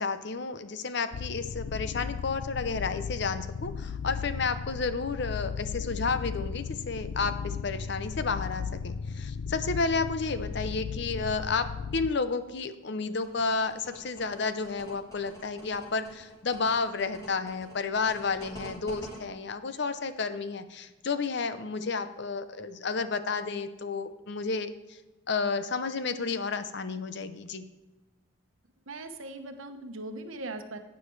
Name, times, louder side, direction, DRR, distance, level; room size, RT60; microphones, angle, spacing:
voice 1, 0.0-11.7 11.9-25.0 25.3-27.6, left 4 dB, 55° left, 11 dB, 0.6 m, -31 dB
sound 1, 1.1-12.1, left 6 dB, 90° left, 0.4 m, -36 dB
sound 2, 13.2-19.1, left 1 dB, 15° left, 3.3 m, -46 dB
voice 2, 28.9-30.8, right 2 dB, 70° right, 7 dB, 1.0 m, -39 dB
11.5 x 9.2 x 3.2 m, 1.2 s
head